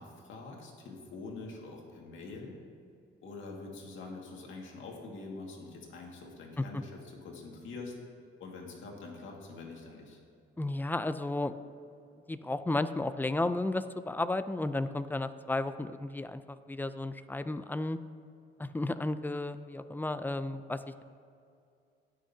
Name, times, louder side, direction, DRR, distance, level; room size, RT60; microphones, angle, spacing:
voice 1, 0.0-2.6 3.2-8.1 8.4-10.2, left 3 dB, 75° left, 0 dB, 2.0 m, -45 dB
voice 2, 10.6-11.6 12.3-18.0 18.6-21.0, left 2 dB, 10° left, 12 dB, 0.4 m, -33 dB
18.0 x 6.4 x 2.8 m, 2.4 s
cardioid pair, 90°, 20 cm